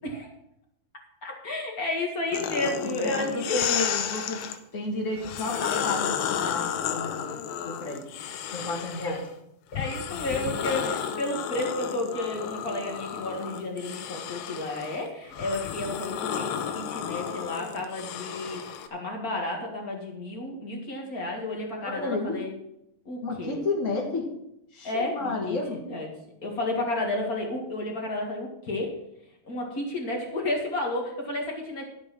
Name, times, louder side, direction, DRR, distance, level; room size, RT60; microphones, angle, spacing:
voice 1, 1.2-3.6 9.0-9.1 9.7-18.6 18.9-22.5 23.0-23.6 24.8-26.1 26.4-28.9 29.4-31.9, left 2 dB, 40° left, 1 dB, 1.2 m, -32 dB
sound 1, 2.3-4.6 5.2-9.3 9.7-18.9, left 8 dB, 85° left, 2.8 m, -32 dB
voice 2, 2.6-4.4 4.7-8.1 8.5-9.2 21.8-22.4 23.2-24.3 24.7-25.8, left 3 dB, 65° left, -1 dB, 0.7 m, -32 dB
12.0 x 7.7 x 6.1 m, 0.81 s
omnidirectional pair, 4.6 m